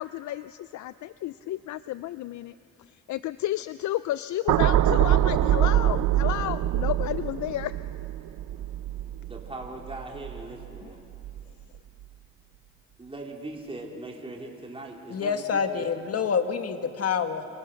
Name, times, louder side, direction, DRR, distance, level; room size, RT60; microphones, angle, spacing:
voice 1, 0.0-2.5 2.9-7.7 10.8-10.9, left 14 dB, 70° left, 14 dB, 0.5 m, -32 dB
sound 1, 4.5-10.8 11.1-11.4, right 12 dB, 85° right, 0.8 m, -25 dB
voice 2, 9.2-11.0 13.0-15.9, right 2 dB, 20° right, -1 dB, 3.8 m, -40 dB
voice 3, 15.1-17.4, left 6 dB, 55° left, 7 dB, 1.8 m, -27 dB
28.5 x 28.0 x 6.4 m, 2.8 s
cardioid pair, 90°, 30 cm